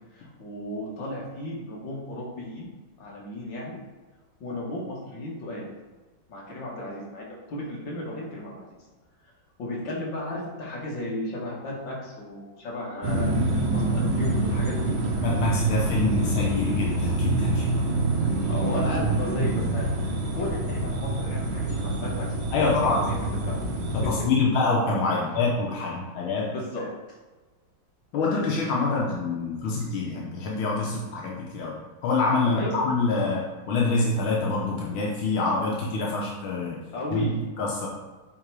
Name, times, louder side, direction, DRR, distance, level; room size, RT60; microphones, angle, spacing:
voice 1, 0.1-2.7 3.0-3.8 4.4-5.7 6.3-8.7 9.6-15.0 18.2-19.9 20.3-23.5 26.5-26.8 28.9-29.0 32.5-32.8 36.9-37.4, left 1 dB, 65° left, -4 dB, 2.4 m, -34 dB
sound 1, 13.0-24.2, right 2 dB, 80° right, 1.8 m, -26 dB
voice 2, 15.2-17.7 22.5-23.1 23.9-26.5 26.8-26.9 28.1-31.8 32.0-36.8 37.1-37.3 37.6-37.9, left 3 dB, 90° left, -2 dB, 1.8 m, -26 dB
7.8 x 3.7 x 4.8 m, 1.3 s
omnidirectional pair, 2.2 m